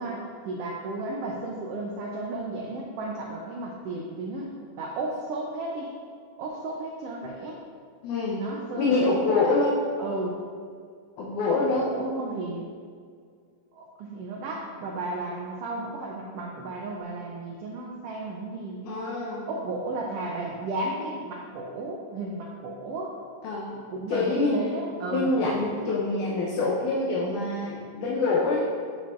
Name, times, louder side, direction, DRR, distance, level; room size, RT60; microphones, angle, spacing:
voice 1, 0.0-5.9 6.4-7.6 8.4-9.4 10.0-10.3 11.5-12.6 13.7-19.1 19.5-23.1 23.9-25.3, right 2 dB, 80° right, -1 dB, 1.3 m, -34 dB
voice 2, 8.0-8.5 8.8-9.8 11.2-11.9 18.8-19.5 23.4-23.7 24.1-24.6 25.1-28.7, left 3 dB, 85° left, -4 dB, 2.3 m, -25 dB
8.4 x 7.1 x 2.5 m, 2.1 s
omnidirectional pair, 3.5 m